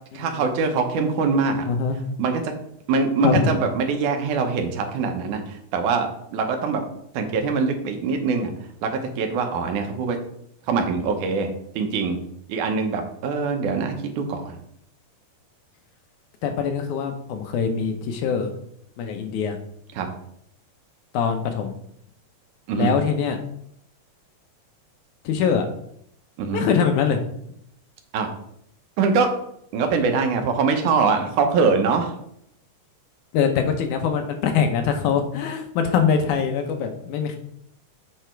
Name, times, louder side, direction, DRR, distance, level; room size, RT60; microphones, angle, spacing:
voice 1, 0.1-1.7 2.2-2.5 2.9-6.8 7.1-8.5 8.8-10.2 10.7-12.2 12.5-14.6 19.9-20.1 22.7-23.0 26.4-26.7 28.1-28.3 29.0-29.3 29.7-32.1, right 4 dB, 75° right, 5 dB, 2.4 m, -23 dB
voice 2, 1.7-2.0 3.2-3.6 16.4-18.5 19.0-19.6 21.1-21.7 22.8-23.4 25.3-25.7 26.5-27.2 33.3-37.4, left 6 dB, 75° left, 6 dB, 2.2 m, -23 dB
8.1 x 4.9 x 4.5 m, 0.71 s
omnidirectional pair, 3.7 m